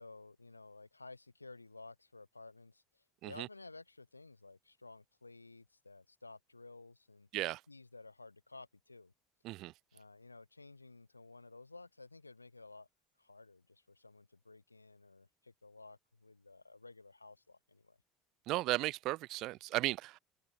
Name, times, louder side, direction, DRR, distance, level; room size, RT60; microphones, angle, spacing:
voice 1, 0.0-7.3 7.7-9.1 9.9-12.9 13.2-18.0, left 3 dB, 90° left, 2.7 m, -54 dB
voice 2, 18.5-20.2, right 18 dB, 55° right, 1.3 m, -35 dB
figure-of-eight pair, 65°, 0 cm